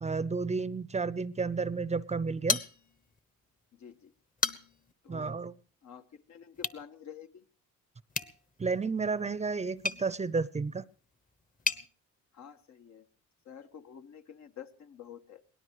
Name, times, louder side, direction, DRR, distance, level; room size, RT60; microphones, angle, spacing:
voice 1, 0.0-2.6 5.1-5.5 8.6-10.8, right 4 dB, 20° right, 18 dB, 0.6 m, -31 dB
sound 1, 2.5-3.2 3.6-3.7 4.2-4.9 6.5-6.8 8.1-11.9, left 4 dB, 25° left, 1.2 m, -35 dB
voice 2, 3.7-4.1 5.0-5.4 5.8-7.4 12.3-13.1 13.4-15.4, left 8 dB, 65° left, 7 dB, 1.7 m, -49 dB
23.5 x 18.0 x 3.1 m, 0.43 s
cardioid pair, 90°, 30 cm